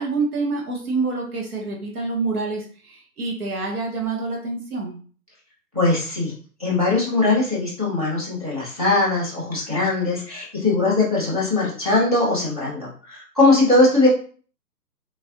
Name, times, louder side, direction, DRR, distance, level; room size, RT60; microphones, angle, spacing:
voice 1, 0.0-5.0, right 3 dB, 60° right, -1 dB, 0.9 m, -27 dB
voice 2, 5.7-6.3 6.6-14.1, left 2 dB, 25° right, -7 dB, 0.5 m, -20 dB
3.1 x 2.4 x 2.6 m, 0.42 s
hypercardioid pair, 165°, 50 cm